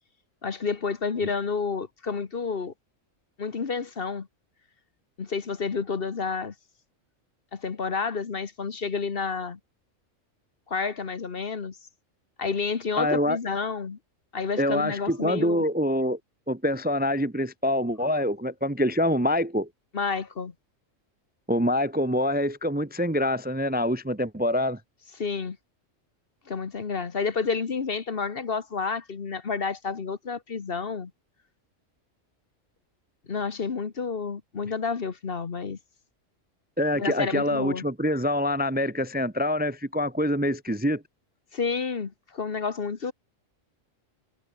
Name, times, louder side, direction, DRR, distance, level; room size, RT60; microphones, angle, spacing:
voice 1, 0.4-2.7 3.4-4.3 5.2-6.5 7.5-9.6 10.7-11.8 12.4-14.0 14.3-15.6 19.9-20.5 25.2-25.6 26.5-31.1 33.3-35.8 36.9-37.8 41.5-43.1, left 5 dB, 45° left, 1.4 m, -30 dB
voice 2, 13.0-13.4 14.6-16.2 16.5-19.7 21.5-24.8 36.8-41.0, left 1 dB, 10° right, 0.7 m, -25 dB
omnidirectional pair, 1.4 m